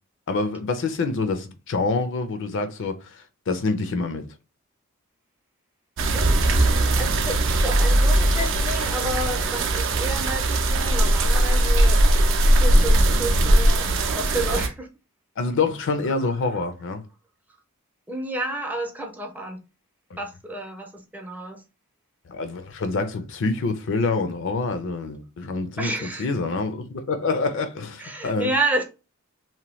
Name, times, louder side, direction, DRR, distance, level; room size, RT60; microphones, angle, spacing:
voice 1, 0.3-4.3 15.4-17.0 22.3-28.5, left 3 dB, 60° left, 0.5 m, -26 dB
sound 1, 6.0-14.7, right 1 dB, 60° right, 0.5 m, -19 dB
voice 2, 6.1-12.0 12.6-14.9 16.1-16.2 18.1-19.6 20.2-21.6 25.8-26.3 28.0-28.8, right 1 dB, 5° right, 0.4 m, -30 dB
2.8 x 2.2 x 3.0 m
head